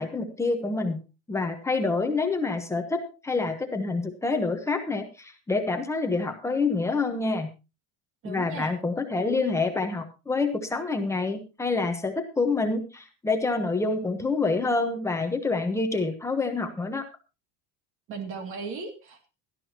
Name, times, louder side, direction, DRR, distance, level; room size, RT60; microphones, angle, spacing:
voice 1, 0.0-7.5 8.2-17.0, left 3 dB, 5° left, 5 dB, 0.9 m, -27 dB
voice 2, 8.2-8.7 18.1-19.3, right 5 dB, 35° right, 6 dB, 2.4 m, -37 dB
17.0 x 12.5 x 2.9 m, 0.28 s
cardioid pair, 180°, 37 cm